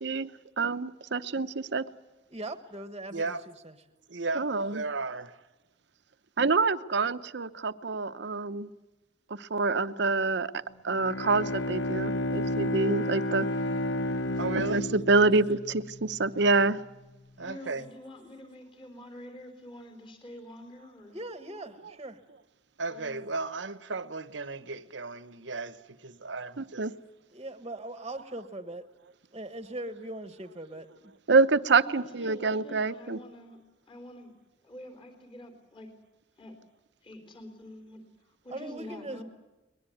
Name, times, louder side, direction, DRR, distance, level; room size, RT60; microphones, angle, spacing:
voice 1, 0.6-1.8 4.4-4.8 6.4-8.7 9.3-10.5 10.8-13.5 14.7-16.8 26.6-26.9 31.3-33.2, right 3 dB, 65° right, 0.8 m, -26 dB
voice 2, 2.3-3.7 21.1-22.2 27.3-28.8 29.3-31.1 38.5-39.2, right 1 dB, 25° right, 1.3 m, -40 dB
voice 3, 3.1-3.4 4.1-5.4 14.4-14.9 17.4-17.9 22.8-26.9, right 3 dB, 80° right, 1.2 m, -35 dB
Bowed string instrument, 10.9-16.5, left 1 dB, 75° left, 0.9 m, -32 dB
voice 4, 17.4-21.2 22.9-23.2 31.8-33.6 33.9-34.3 34.6-35.9 36.4-36.6 37.0-38.0 38.4-39.2, left 1 dB, 30° left, 3.9 m, -46 dB
22.0 x 21.0 x 9.3 m
head